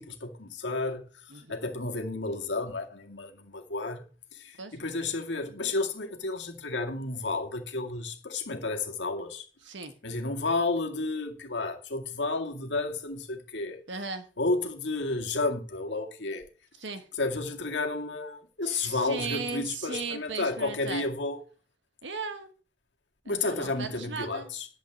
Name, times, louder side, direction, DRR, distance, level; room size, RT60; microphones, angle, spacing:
voice 1, 0.0-4.0 4.3-9.5 10.0-13.8 14.4-16.4 17.1-21.4 23.3-24.7, left 3 dB, 70° left, 2.1 m, -32 dB
voice 2, 9.6-9.9 13.9-14.3 16.8-17.1 18.6-21.1 22.0-22.5 23.2-24.5, right 4 dB, 75° right, 1.6 m, -37 dB
11.5 x 4.7 x 7.8 m
head